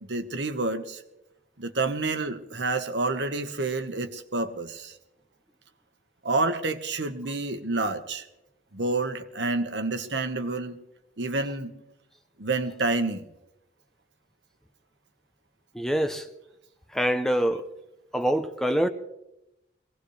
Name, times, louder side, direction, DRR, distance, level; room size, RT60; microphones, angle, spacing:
voice 1, 0.0-1.0 1.6-4.9 6.2-8.2 8.7-10.8 11.2-11.7 12.4-13.3, right 3 dB, 70° right, 8 dB, 1.3 m, -28 dB
voice 2, 15.7-16.3 16.9-17.6 18.1-18.9, equal, ahead, 8 dB, 0.6 m, -25 dB
23.5 x 17.5 x 3.3 m, 0.89 s
head